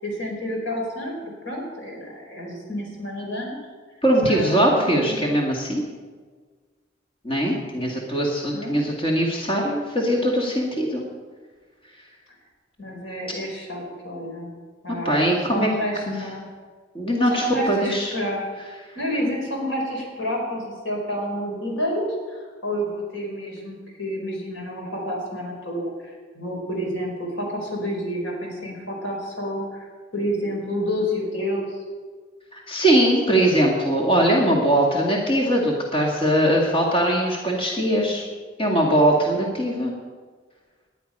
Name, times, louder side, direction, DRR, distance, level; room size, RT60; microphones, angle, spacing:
voice 1, 0.0-3.5 4.3-5.2 8.5-8.8 12.8-14.5 14.8-16.5 17.3-18.5 18.9-29.9 30.1-31.8 38.0-38.1, equal, 85° left, 0 dB, 4.8 m, -29 dB
voice 2, 4.0-5.8 7.2-11.0 15.0-15.7 16.1-16.2 16.9-18.1 32.5-38.3 38.6-39.9, right 1 dB, 30° left, -1 dB, 2.1 m, -21 dB
18.5 x 10.5 x 5.5 m, 1.5 s
head